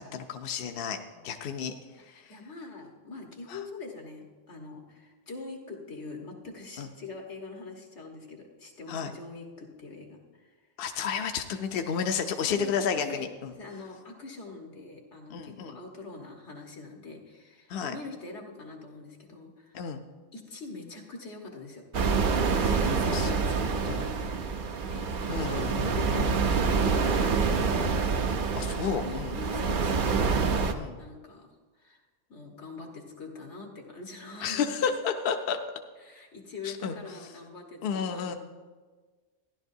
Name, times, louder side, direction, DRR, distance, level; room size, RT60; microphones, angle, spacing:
voice 1, 0.0-1.0 1.2-1.7 2.1-2.3 3.5-3.6 6.8-6.9 8.9-9.1 10.8-13.5 15.3-15.8 17.7-17.9 19.7-20.0 22.6-23.3 23.9-24.0 25.3-26.0 28.6-29.3 30.7-31.0 34.4-35.6 36.6-36.9 37.8-38.3, left 6 dB, 65° left, 6 dB, 0.8 m, -31 dB
voice 2, 0.9-1.3 2.1-10.5 11.3-11.4 11.8-13.3 13.6-19.9 20.3-21.8 22.5-25.3 25.9-26.4 26.6-27.9 28.7-30.6 31.0-31.5 31.8-32.0 32.3-34.8 36.0-38.4, left 3 dB, 90° left, 0 dB, 1.8 m, -43 dB
sound 1, 21.9-30.7, right 5 dB, 55° right, 0.7 m, -27 dB
14.5 x 11.0 x 2.7 m, 1.4 s
omnidirectional pair, 1.1 m